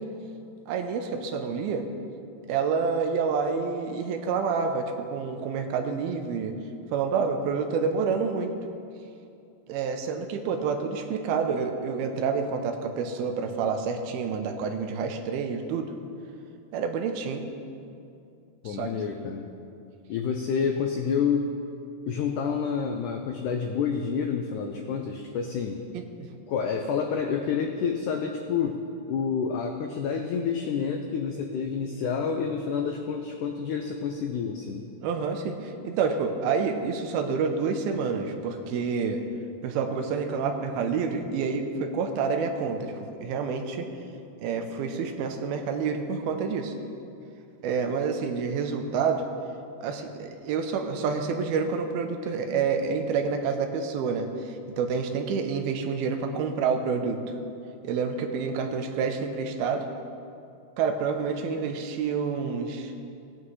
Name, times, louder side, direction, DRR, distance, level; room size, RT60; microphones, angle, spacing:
voice 1, 0.7-1.9 2.5-6.6 6.9-8.5 9.7-15.9 16.7-17.4 18.7-18.9 25.9-26.3 35.0-39.2 39.6-43.9 44.4-46.7 47.6-49.3 49.8-57.2 57.8-59.9 60.8-62.9, right 5 dB, 85° right, 5 dB, 2.6 m, -28 dB
voice 2, 18.6-19.5 20.1-21.5 22.1-25.8 26.5-34.8, left 6 dB, 85° left, 4 dB, 1.7 m, -28 dB
18.0 x 9.5 x 3.2 m, 2.6 s
omnidirectional pair, 4.4 m